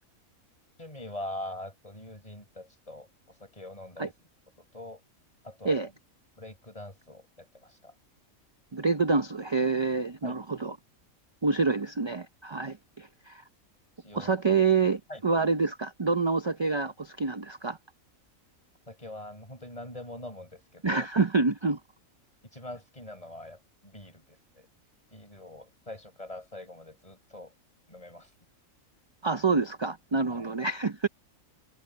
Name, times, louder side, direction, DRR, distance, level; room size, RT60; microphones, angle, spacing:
voice 1, 0.8-4.1 4.6-5.0 5.4-5.8 6.4-8.0 10.2-10.4 14.0-14.3 15.1-15.2 18.9-21.1 22.5-24.7 25.1-27.5 27.9-28.3 30.3-30.5, left 1 dB, 25° left, 7.8 m, -43 dB
voice 2, 8.7-10.7 11.4-13.4 14.1-17.8 20.8-21.8 29.2-31.1, right 4 dB, 30° right, 0.5 m, -27 dB
omnidirectional pair, 1.5 m